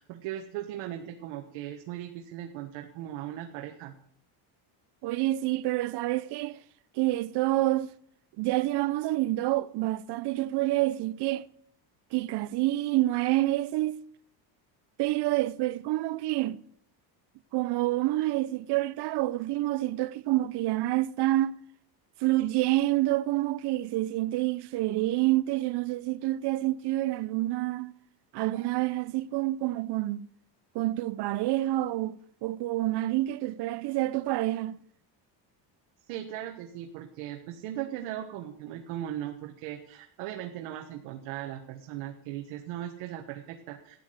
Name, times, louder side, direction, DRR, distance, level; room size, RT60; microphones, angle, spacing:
voice 1, 0.0-3.9 36.1-44.0, right 12 dB, 80° right, 1.5 m, -38 dB
voice 2, 5.0-6.6 7.0-7.9 8.4-11.5 12.1-14.0 15.0-16.6 17.5-21.5 22.2-27.9 28.3-30.3 30.7-34.8, right 16 dB, 55° right, 0.7 m, -28 dB
13.0 x 9.6 x 8.0 m
cardioid pair, 140°, 48 cm